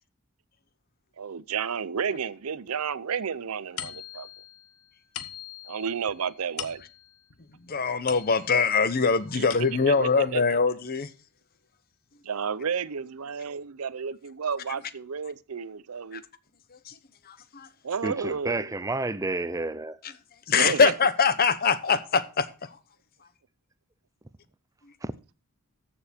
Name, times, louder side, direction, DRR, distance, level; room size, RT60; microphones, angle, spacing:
voice 1, 1.2-4.3 5.6-6.8 9.3-9.4 9.8-10.4 12.2-16.2 17.8-18.9 20.5-21.0, right 6 dB, 80° right, 0.6 m, -31 dB
sound 1, 3.8-8.8 9.2-10.1, left 10 dB, 75° left, 1.2 m, -42 dB
voice 2, 7.6-11.1 16.1-16.2 16.7-16.9 17.3-17.7 20.0-20.1 20.5-22.8, left 5 dB, 45° left, 0.9 m, -23 dB
voice 3, 18.0-20.0 25.0-25.1, right 2 dB, 15° right, 0.6 m, -30 dB
14.0 x 7.0 x 4.4 m
head